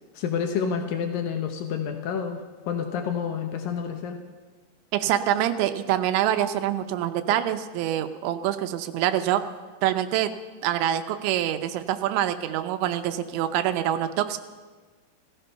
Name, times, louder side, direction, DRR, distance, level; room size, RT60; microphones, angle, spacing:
voice 1, 0.2-4.2, left 7 dB, 90° left, 5 dB, 2.0 m, -29 dB
voice 2, 4.9-9.4 9.8-10.3 10.6-14.4, right 11 dB, 80° right, 10 dB, 2.9 m, -25 dB
16.5 x 14.0 x 5.6 m, 1.4 s
omnidirectional pair, 5.4 m